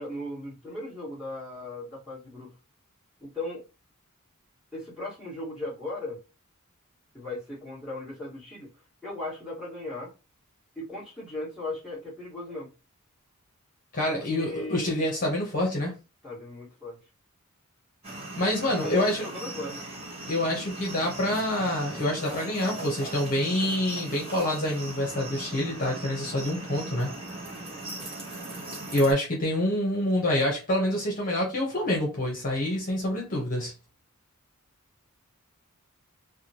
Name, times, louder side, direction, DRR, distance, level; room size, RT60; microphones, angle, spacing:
voice 1, 0.0-2.5 3.2-3.7 4.7-6.2 7.1-8.7 9.0-10.1 10.8-12.7 14.1-15.1 16.2-17.0 18.8-19.8, left 2 dB, ahead, -8 dB, 1.8 m, -37 dB
voice 2, 13.9-15.9 18.4-19.2 20.3-27.1 28.9-33.7, left 1 dB, 40° left, -1 dB, 1.0 m, -27 dB
sound 1, 18.0-29.1, right 2 dB, 30° right, 1.4 m, -39 dB
3.5 x 2.2 x 2.9 m, 0.30 s
head